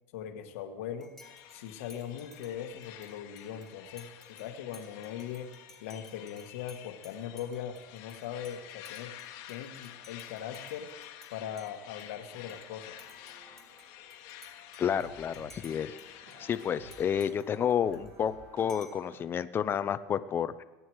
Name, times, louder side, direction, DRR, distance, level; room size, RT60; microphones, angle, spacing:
voice 1, 0.1-1.1 1.5-5.5 5.8-9.2 9.5-10.9 11.3-13.0, left 9 dB, 85° left, 6 dB, 1.5 m, -40 dB
Dishes pots and pans / Cutlery silverware / Chink clink, 1.0-11.3 11.6-12.7 13.0-16.1 16.3-18.3 18.7-19.1, left 2 dB, ahead, 3.2 m, -57 dB
sound 1, 1.2-17.3, left 11 dB, 65° left, 1.4 m, -50 dB
sound 2, 12.3-14.3 15.0-19.2, right 2 dB, 60° right, 4.4 m, -55 dB
voice 2, 14.8-16.0 16.4-20.6, left 8 dB, 30° left, 13 dB, 0.7 m, -30 dB
22.5 x 9.4 x 4.8 m, 1.1 s
supercardioid pair, 125°, 7 cm